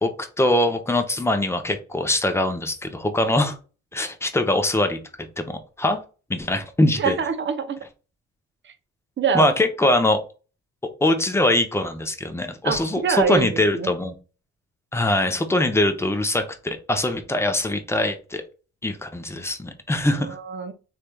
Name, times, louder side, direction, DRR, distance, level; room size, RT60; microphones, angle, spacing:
voice 1, 0.0-3.6 3.9-6.0 6.3-7.2 9.3-10.2 11.0-14.1 14.9-18.4 18.8-20.4, left 1 dB, 10° left, 6 dB, 0.6 m, -22 dB
voice 2, 7.0-7.8 8.6-8.7 9.2-9.5 12.6-13.9 20.2-20.7, right 6 dB, 40° right, 10 dB, 0.6 m, -25 dB
3.2 x 3.2 x 2.2 m, 0.34 s
cardioid pair, 90°, 30 cm